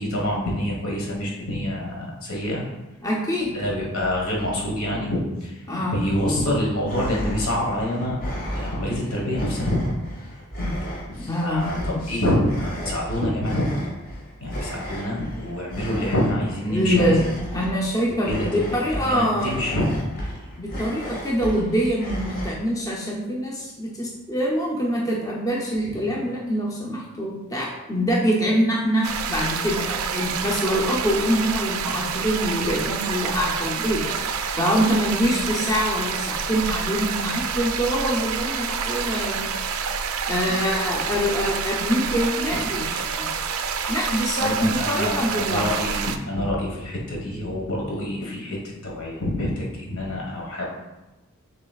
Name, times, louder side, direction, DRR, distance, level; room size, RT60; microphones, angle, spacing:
voice 1, 0.0-2.6 3.5-5.5 5.9-8.2 8.5-9.8 11.3-11.8 12.1-13.7 14.4-17.2 18.3-18.6 18.9-19.9 32.6-32.7 42.5-42.6 44.4-46.0 46.3-50.6, left 1 dB, 75° left, -3 dB, 1.3 m, -26 dB
voice 2, 3.0-3.5 5.7-6.0 10.6-10.7 11.2-12.0 16.7-17.3 17.5-19.5 20.6-34.0 34.6-39.5 40.3-43.3 43.9-45.7, equal, 15° left, -4 dB, 0.6 m, -24 dB
sound 1, 6.9-22.5, equal, 45° left, 0.9 m, -34 dB
sound 2, 29.0-46.2, right 6 dB, 75° right, 0.4 m, -28 dB
6.6 x 3.1 x 2.4 m, 1.1 s
head